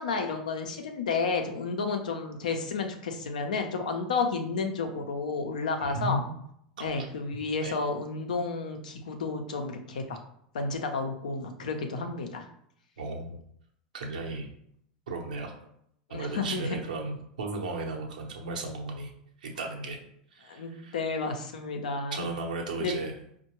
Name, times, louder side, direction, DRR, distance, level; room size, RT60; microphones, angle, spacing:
voice 1, 0.0-6.2 6.8-10.2 10.5-12.5 16.1-16.8 20.4-22.3 22.8-22.9, left 4 dB, 85° left, 5 dB, 0.5 m, -31 dB
voice 2, 5.8-6.3 6.8-6.9 7.6-7.7 13.0-13.4 13.9-14.5 15.1-15.5 16.1-19.1 19.4-20.0 20.3-21.0 22.1-23.1, right 2 dB, 85° right, 1 dB, 0.7 m, -35 dB
4.5 x 2.1 x 2.9 m, 0.71 s
hypercardioid pair, 95°, 4 cm